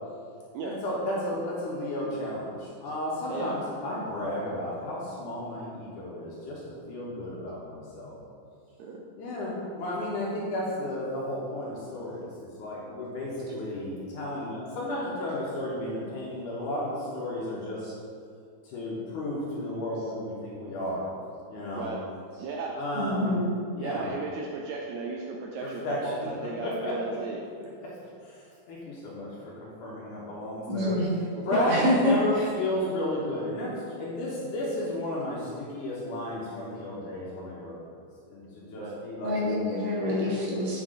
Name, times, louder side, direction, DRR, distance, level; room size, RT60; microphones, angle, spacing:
voice 1, 0.6-6.6 6.9-8.2 9.2-17.8 18.6-21.1 21.5-21.9 22.8-23.4 23.7-24.1 25.6-26.3 26.6-26.9 28.2-28.4 28.7-29.3 29.6-30.9 31.5-37.8 38.3-39.4 40.0-40.2, left 1 dB, 70° left, -6 dB, 2.7 m, -33 dB
voice 2, 22.4-22.8 23.8-27.4 31.3-32.0 38.7-39.0, right 4 dB, 85° right, -1 dB, 1.6 m, -36 dB
voice 3, 23.0-23.5 30.7-31.1 31.7-32.5 39.2-40.8, left 1 dB, 60° right, -5 dB, 2.6 m, -26 dB
8.1 x 6.7 x 3.9 m, 2.3 s
omnidirectional pair, 3.9 m